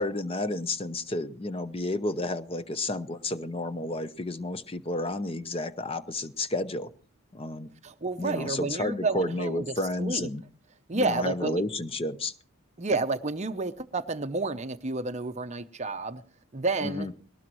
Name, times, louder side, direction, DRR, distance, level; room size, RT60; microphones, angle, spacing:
voice 1, 0.0-6.9 7.3-7.7 8.2-10.4 10.9-12.3 16.8-17.1, left 2 dB, 25° left, 12 dB, 0.7 m, -31 dB
voice 2, 7.8-10.3 10.9-11.6 12.8-16.2 16.5-17.1, right 3 dB, 30° right, 9 dB, 0.6 m, -30 dB
20.5 x 18.5 x 3.1 m, 0.43 s
head